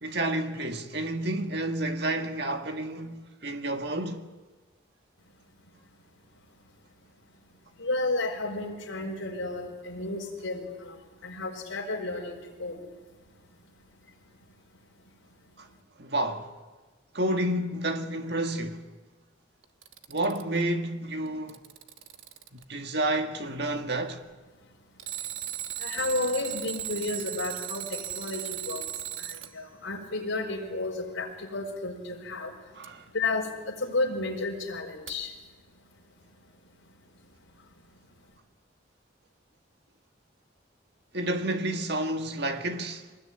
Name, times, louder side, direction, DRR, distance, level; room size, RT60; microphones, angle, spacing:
voice 1, 0.0-4.3 15.6-15.7 16.0-16.5 17.1-18.9 20.1-21.6 22.5-24.2 32.7-33.1 41.1-43.1, right 1 dB, 55° right, 1.9 m, -30 dB
voice 2, 7.8-10.9 11.2-12.8 25.8-28.8 29.5-32.5 33.1-35.3, left 2 dB, 80° left, 5.0 m, -32 dB
Alarm, 19.6-20.6 21.3-22.6 25.0-29.5 32.8-32.9 35.1-35.2, right 11 dB, 75° right, 1.3 m, -37 dB
23.5 x 20.0 x 9.7 m
head